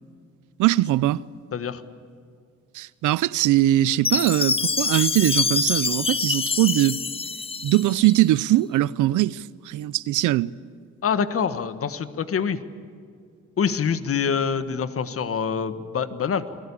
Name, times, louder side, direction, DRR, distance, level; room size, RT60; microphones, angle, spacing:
voice 1, 0.6-1.2 2.7-7.0 7.6-10.5, right 15 dB, 85° right, 0.6 m, -21 dB
voice 2, 1.5-1.8 11.0-12.6 13.6-16.6, left 6 dB, 50° left, 1.5 m, -25 dB
Chime, 4.0-8.2, left 5 dB, 20° left, 0.5 m, -25 dB
29.0 x 19.0 x 8.5 m
cardioid pair, 90°, 30 cm